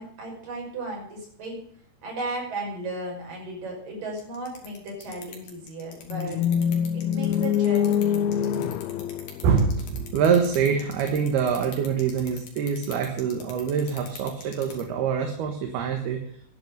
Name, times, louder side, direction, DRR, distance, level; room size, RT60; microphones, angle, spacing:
voice 1, 0.0-1.6 2.0-6.4 6.9-8.5, right 2 dB, 55° right, -1 dB, 7.1 m, -35 dB
sound 1, 4.2-14.8, left 7 dB, 55° left, 3.9 m, -42 dB
sound 2, 6.1-10.2, left 9 dB, 75° left, 2.5 m, -25 dB
voice 2, 9.4-16.2, right 6 dB, 75° right, 3 dB, 3.5 m, -25 dB
11.5 x 10.5 x 7.9 m, 0.62 s
omnidirectional pair, 4.6 m